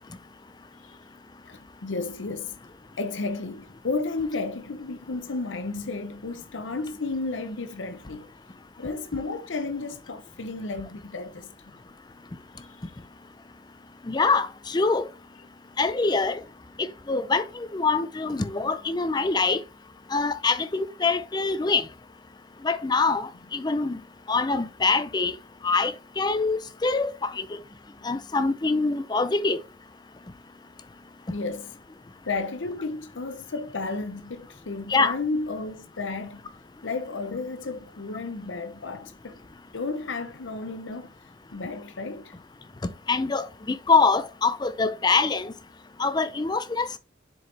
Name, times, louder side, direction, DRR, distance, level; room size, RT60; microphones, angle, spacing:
voice 1, 1.4-2.6 3.0-8.3 8.8-11.5 31.3-31.7 32.2-36.4 36.8-39.4 39.7-41.1 41.5-42.3, left 3 dB, 70° left, 0.8 m, -32 dB
voice 2, 14.1-15.1 15.8-16.4 17.1-19.6 20.1-21.9 22.6-24.0 24.3-25.3 25.6-27.6 28.0-29.6 34.9-35.1 42.8-45.5 46.0-46.9, left 4 dB, 20° left, 0.4 m, -24 dB
6.9 x 4.7 x 3.3 m
head